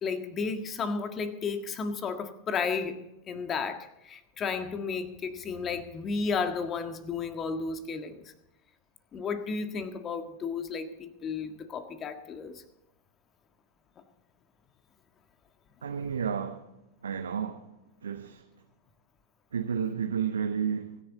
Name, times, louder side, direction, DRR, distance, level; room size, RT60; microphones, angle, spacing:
voice 1, 0.0-3.0 3.3-8.2 9.1-12.6, left 5 dB, 25° left, 1.7 m, -33 dB
voice 2, 15.8-16.6 17.0-17.7 18.0-18.5 19.5-21.0, right 7 dB, 70° right, 1.1 m, -31 dB
24.0 x 10.5 x 4.0 m
figure-of-eight pair, 90°, 0 cm